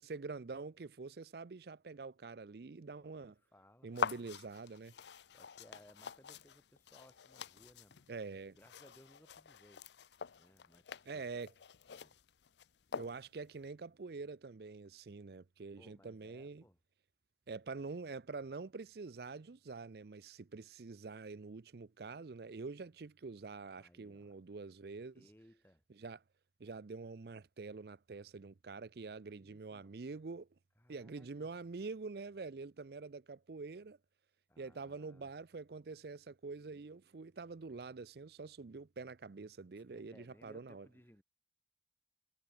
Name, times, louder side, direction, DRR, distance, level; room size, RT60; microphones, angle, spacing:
voice 1, 0.0-3.4 3.8-4.9 8.1-8.6 11.1-11.5 12.9-16.6 17.5-25.3 26.0-26.2 26.6-30.5 30.9-34.0 34.6-40.9, right 4 dB, 60° right, 0.5 m, -46 dB
voice 2, 2.9-4.3 5.3-8.1 8.6-9.8 10.4-11.5 11.9-12.2 15.7-16.8 23.7-24.4 25.1-25.8 29.3-30.0 30.8-31.5 34.5-35.3 39.8-41.2, equal, 10° left, 2.1 m, -64 dB
sound 1, 3.9-13.5, left 6 dB, 75° left, 0.6 m, -45 dB
head